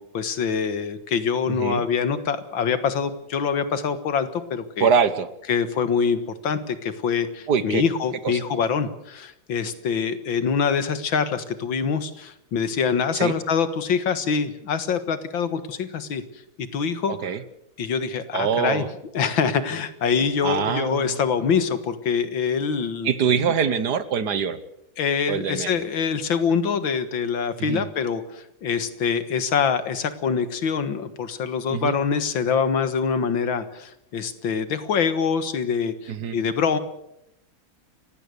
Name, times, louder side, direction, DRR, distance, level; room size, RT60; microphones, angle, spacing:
voice 1, 0.0-4.9 5.5-16.2 16.6-17.2 17.8-18.8 19.1-23.1 23.4-23.5 25.0-36.8, left 6 dB, 80° left, 11 dB, 2.3 m, -25 dB
voice 2, 1.5-1.8 4.8-5.3 7.5-7.8 8.2-8.4 13.1-13.4 17.1-17.4 18.3-18.9 20.4-21.2 23.0-24.6 25.3-25.8 27.6-27.9 31.7-32.0 36.1-36.4, right 7 dB, 60° right, 14 dB, 1.6 m, -24 dB
29.5 x 16.0 x 6.8 m, 0.80 s
omnidirectional pair, 2.1 m